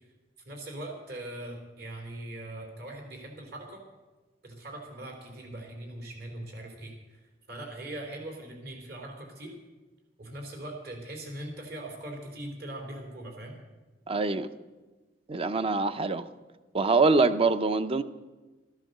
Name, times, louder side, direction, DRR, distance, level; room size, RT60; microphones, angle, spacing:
voice 1, 0.4-3.8 4.4-9.5 10.2-13.6, right 1 dB, 60° right, 3.3 m, -41 dB
voice 2, 14.1-14.5 15.3-16.3 16.7-18.0, right 3 dB, 30° right, 0.6 m, -24 dB
13.5 x 12.5 x 6.5 m
head